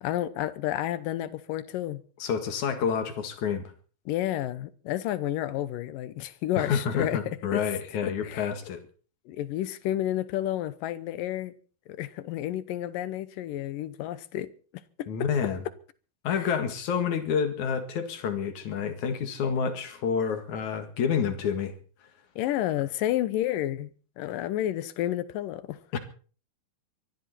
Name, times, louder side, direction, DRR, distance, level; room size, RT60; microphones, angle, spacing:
voice 1, 0.0-2.0 4.1-7.6 8.0-8.5 9.3-11.6 11.9-14.5 15.0-15.1 16.3-16.5 22.4-23.9 24.2-25.8, left 13 dB, 75° left, 2.3 m, -30 dB
voice 2, 2.2-3.7 6.6-8.8 15.1-15.6 16.2-21.7 25.9-26.0, left 7 dB, 55° left, 3.0 m, -28 dB
23.5 x 13.5 x 4.2 m
omnidirectional pair, 4.4 m